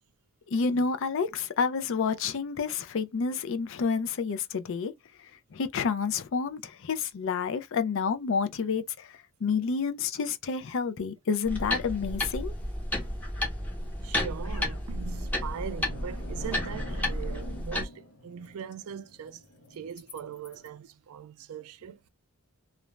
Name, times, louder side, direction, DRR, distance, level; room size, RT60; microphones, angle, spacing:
voice 1, 0.5-4.9 5.5-12.5, left 5 dB, 60° left, 0.4 m, -29 dB
sound 1, 11.5-17.8, left 1 dB, 5° left, 0.7 m, -32 dB
sound 2, 13.6-20.7, left 1 dB, 85° left, 0.8 m, -47 dB
voice 2, 13.7-19.4 19.7-22.0, right 8 dB, 70° right, 0.3 m, -41 dB
2.5 x 2.1 x 3.0 m
head